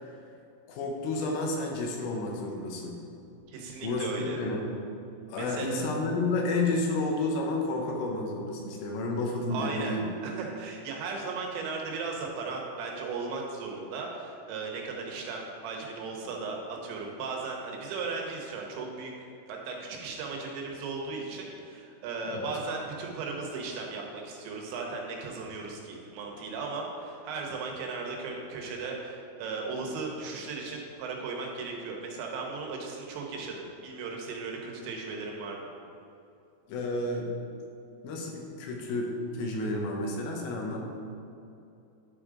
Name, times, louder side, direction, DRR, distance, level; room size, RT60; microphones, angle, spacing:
voice 1, 0.7-3.0 3.8-4.6 5.3-10.1 22.3-22.5 36.7-37.3 38.0-40.8, left 2 dB, 85° left, 0 dB, 3.3 m, -31 dB
voice 2, 3.5-4.4 5.4-5.8 9.5-10.0 10.2-19.1 19.5-35.7, right 4 dB, 90° right, 0 dB, 3.4 m, -36 dB
11.0 x 5.0 x 3.8 m, 2.7 s
omnidirectional pair, 5.0 m